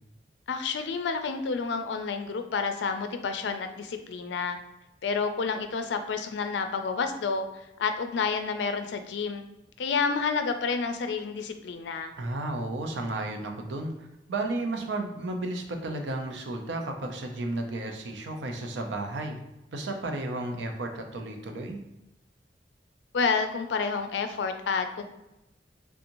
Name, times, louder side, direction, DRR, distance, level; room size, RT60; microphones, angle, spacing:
voice 1, 0.5-4.6 5.0-9.4 9.8-12.1 23.1-25.0, left 5 dB, 80° left, 7 dB, 0.4 m, -29 dB
voice 2, 12.2-19.4 19.7-21.8, right 2 dB, 90° right, 4 dB, 0.5 m, -33 dB
3.5 x 2.8 x 2.6 m, 0.91 s
head